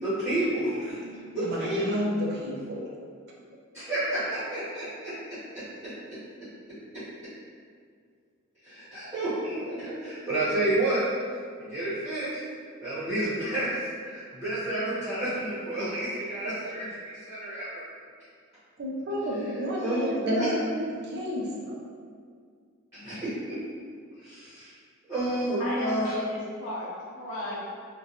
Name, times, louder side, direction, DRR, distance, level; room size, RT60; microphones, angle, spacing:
voice 1, 0.0-1.0 1.3-1.8 3.7-6.2 6.9-7.0 8.6-11.0 11.6-12.4 12.8-17.7 19.8-20.5 22.9-23.6 24.2-24.7 25.1-26.1, right 1 dB, 10° right, -16 dB, 0.8 m, -30 dB
voice 2, 0.9-2.9 18.8-21.8, equal, 50° right, -3 dB, 0.4 m, -32 dB
voice 3, 25.6-27.5, left 1 dB, 70° left, -5 dB, 0.6 m, -35 dB
2.7 x 2.2 x 2.4 m, 2.1 s
head